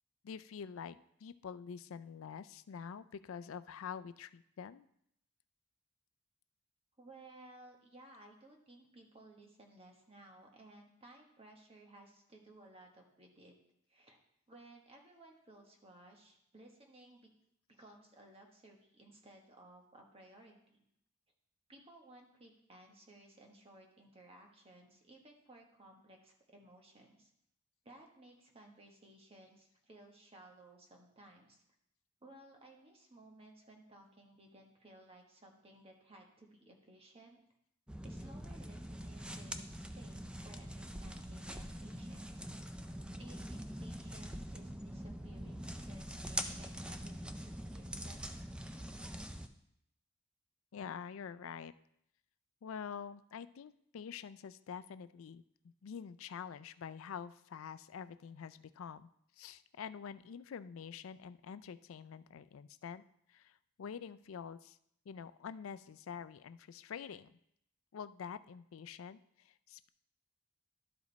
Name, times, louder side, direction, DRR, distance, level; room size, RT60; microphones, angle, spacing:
voice 1, 0.2-4.9 50.7-51.7 52.6-55.4 55.8-59.1 59.4-63.0 63.3-64.8 65.1-67.3 67.9-69.9, left 7 dB, 75° left, 13 dB, 0.4 m, -46 dB
voice 2, 7.0-13.5 13.9-14.2 14.5-17.3 17.8-20.8 21.7-27.3 27.8-31.6 32.2-37.4 38.0-42.5 43.2-48.3, right 1 dB, 30° right, 1 dB, 1.3 m, -58 dB
sound 1, 37.9-49.5, equal, 5° right, 0.4 m, -44 dB
12.0 x 5.1 x 4.1 m, 0.75 s
head